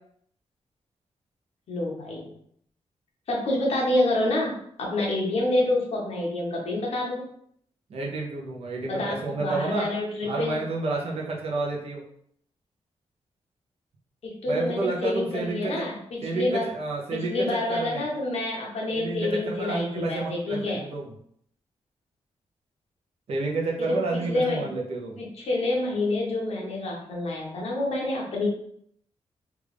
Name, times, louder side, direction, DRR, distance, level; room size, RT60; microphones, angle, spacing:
voice 1, 1.7-2.3 3.3-7.2 8.9-10.6 14.2-16.7 17.1-20.8 23.8-24.0 24.3-24.7 25.2-28.5, left 2 dB, 65° left, -3 dB, 1.1 m, -27 dB
voice 2, 7.9-9.9 10.2-12.0 14.5-15.9 16.2-18.0 18.9-21.1 23.3-25.2, right 3 dB, 60° right, -2 dB, 0.8 m, -30 dB
3.5 x 2.5 x 3.3 m, 0.68 s
wide cardioid pair, 175°, 11 cm